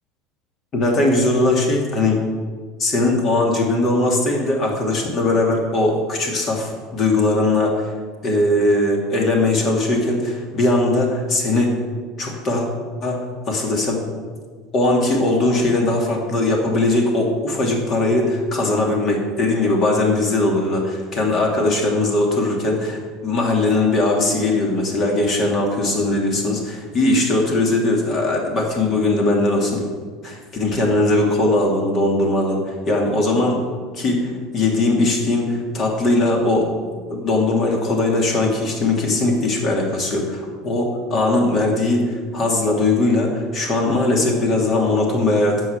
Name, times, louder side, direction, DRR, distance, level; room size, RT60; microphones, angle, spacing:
voice 1, 0.7-2.2 2.8-7.9 8.2-11.7 12.2-12.6 13.0-14.0 14.7-29.9 30.2-33.6 33.9-36.7 37.1-45.6, left 2 dB, 35° left, 0 dB, 2.8 m, -20 dB
10.0 x 7.7 x 8.3 m, 1.5 s
cardioid pair, 145°, 0 cm